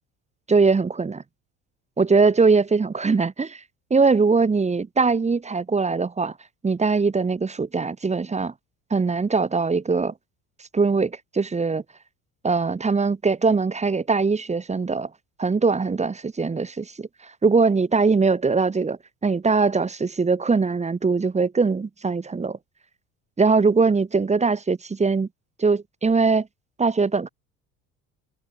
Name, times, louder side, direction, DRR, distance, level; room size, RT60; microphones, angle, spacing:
voice 1, 0.5-1.2 2.0-3.6 3.9-6.3 6.6-8.5 8.9-10.1 10.7-11.8 12.4-15.1 15.4-17.1 17.4-22.6 23.4-25.3 25.6-26.5 26.8-27.3, right 4 dB, 20° right, 0.9 m, -21 dB
hypercardioid pair, 70°, 38 cm